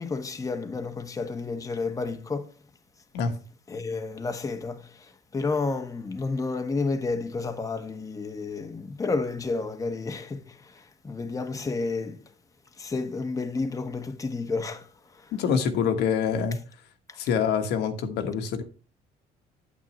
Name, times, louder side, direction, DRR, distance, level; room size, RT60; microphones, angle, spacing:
voice 1, 0.0-2.5 3.7-12.2 12.8-14.9 15.1-15.3 17.1-17.2, left 3 dB, 20° left, 1.1 m, -31 dB
voice 2, 15.3-16.6 17.2-18.6, left 7 dB, 80° left, 1.5 m, -25 dB
9.1 x 9.0 x 3.0 m
cardioid pair, 110°, 17 cm